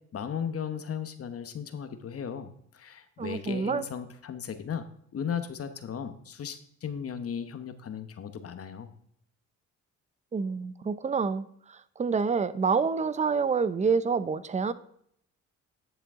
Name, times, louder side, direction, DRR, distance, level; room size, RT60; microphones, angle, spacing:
voice 1, 0.1-4.9 5.1-8.9, left 7 dB, 50° left, 10 dB, 1.1 m, -36 dB
voice 2, 3.2-3.8 10.3-14.7, right 5 dB, 25° right, 15 dB, 0.6 m, -27 dB
10.5 x 6.8 x 3.6 m, 0.69 s
cardioid pair, 90°, 30 cm